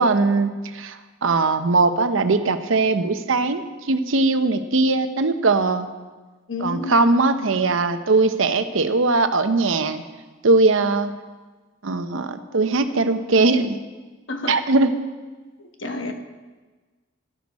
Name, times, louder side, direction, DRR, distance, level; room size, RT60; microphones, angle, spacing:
voice 1, 0.0-5.9 6.6-10.0 10.4-11.1 11.8-13.8 14.5-14.9, right 3 dB, 80° right, 9 dB, 0.8 m, -20 dB
voice 2, 6.5-7.1 14.3-14.6 15.6-16.1, left 2 dB, 70° left, 5 dB, 1.2 m, -30 dB
12.0 x 10.5 x 4.2 m, 1.3 s
head